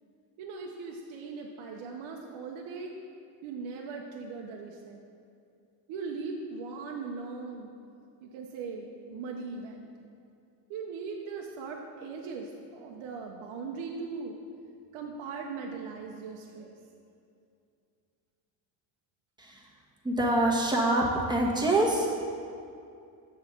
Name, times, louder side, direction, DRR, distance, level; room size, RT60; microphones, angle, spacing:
voice 1, 0.4-2.9 3.4-5.0 5.9-7.7 8.2-9.9 10.7-14.4 14.9-16.8, right 4 dB, 75° right, 0 dB, 0.8 m, -39 dB
voice 2, 19.4-19.7 20.0-22.1, right 1 dB, 10° right, -3 dB, 1.3 m, -25 dB
7.0 x 4.2 x 5.8 m, 2.5 s
cardioid pair, 85°, 49 cm